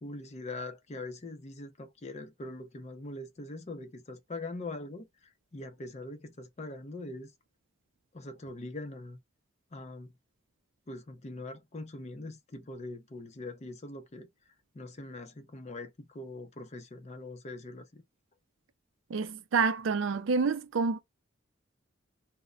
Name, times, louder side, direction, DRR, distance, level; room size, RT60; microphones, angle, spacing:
voice 1, 0.0-7.3 8.1-9.2 9.7-10.1 10.9-14.3 14.7-18.0, left 2 dB, 35° left, 0.5 m, -42 dB
voice 2, 19.1-21.0, right 4 dB, 75° right, 0.4 m, -28 dB
2.1 x 2.1 x 3.6 m
head